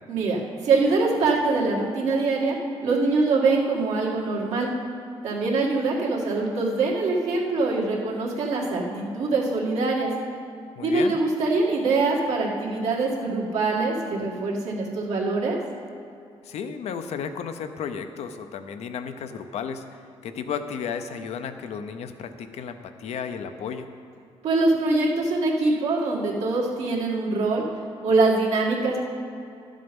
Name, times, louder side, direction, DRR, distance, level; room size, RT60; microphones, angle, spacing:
voice 1, 0.1-2.6 2.8-4.7 5.2-10.1 10.8-15.6 24.4-27.6 28.0-29.0, right 3 dB, 85° right, -3 dB, 2.0 m, -23 dB
voice 2, 10.8-11.2 16.4-23.9, left 6 dB, 80° left, 8 dB, 0.7 m, -33 dB
12.0 x 7.4 x 5.3 m, 2.5 s
cardioid pair, 120°, 11 cm